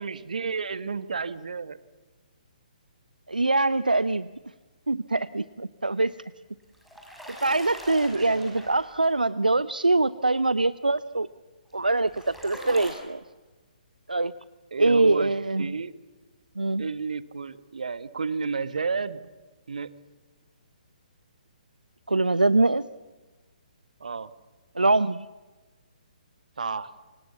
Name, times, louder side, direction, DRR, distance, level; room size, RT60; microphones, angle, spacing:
voice 1, 0.0-1.8 8.1-8.4 14.7-15.3 15.6-16.0 16.8-19.2 19.7-19.9 24.0-24.3 26.6-26.9, right 5 dB, 65° right, 14 dB, 1.6 m, -31 dB
voice 2, 3.3-4.3 4.9-6.1 7.4-11.3 11.7-13.2 14.1-14.3 14.8-15.7 16.6-16.8 22.1-22.9 24.7-25.3, right 2 dB, 80° right, 17 dB, 0.7 m, -23 dB
sound 1, 6.6-9.1 11.7-12.9, equal, ahead, 6.2 m, -41 dB
29.0 x 25.0 x 7.2 m, 1.3 s
figure-of-eight pair, 130°, 5 cm